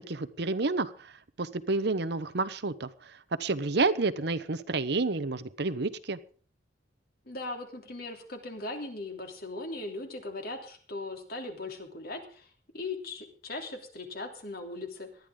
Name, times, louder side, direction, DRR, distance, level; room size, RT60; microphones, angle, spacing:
voice 1, 0.1-0.9 1.4-2.9 3.4-6.2, right 3 dB, 65° right, 13 dB, 0.9 m, -29 dB
voice 2, 7.3-15.3, left 2 dB, 55° left, 4 dB, 3.1 m, -39 dB
19.5 x 12.0 x 3.8 m, 0.42 s
head